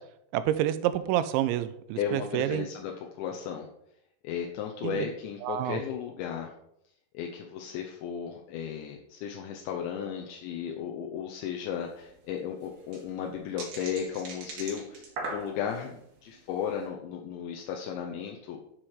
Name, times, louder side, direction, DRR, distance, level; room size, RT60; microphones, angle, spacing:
voice 1, 0.3-2.7 4.8-5.1 5.4-5.8, right 12 dB, 90° right, 13 dB, 3.0 m, -28 dB
voice 2, 2.0-3.7 4.2-6.5 7.1-18.6, left 8 dB, 80° left, 1 dB, 3.1 m, -35 dB
sound 1, 11.8-11.9 12.1-12.2 12.6-15.9 16.4-16.7, right 3 dB, 60° right, 4.2 m, -39 dB
12.0 x 6.1 x 4.8 m, 0.76 s
omnidirectional pair, 5.3 m